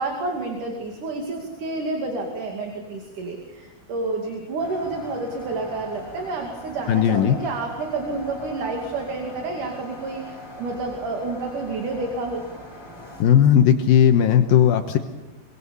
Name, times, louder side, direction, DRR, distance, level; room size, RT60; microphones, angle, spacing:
voice 1, 0.0-12.4, right 3 dB, 60° right, 2 dB, 4.0 m, -29 dB
sound 1, 4.6-13.2, left 1 dB, 5° left, 5.1 m, -40 dB
voice 2, 6.9-7.4 13.2-15.0, left 9 dB, 75° left, 6 dB, 2.8 m, -16 dB
25.0 x 24.0 x 7.1 m, 1.1 s
omnidirectional pair, 4.4 m